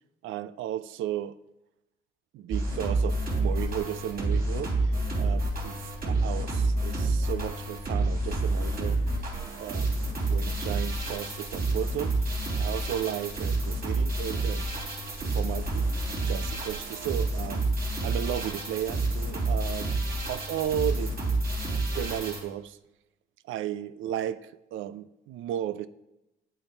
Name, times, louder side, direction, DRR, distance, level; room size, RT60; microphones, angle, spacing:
voice 1, 0.2-1.4 2.3-9.0 9.6-12.2 12.6-14.7 15.2-15.9 16.3-17.6 18.0-19.9 20.3-21.2 21.9-22.8 23.5-25.9, right 11 dB, 80° right, 0.4 m, -34 dB
sound 1, 2.5-22.4, right 2 dB, 50° right, 3.5 m, -29 dB
9.0 x 8.1 x 4.4 m
cardioid pair, 90°, 20 cm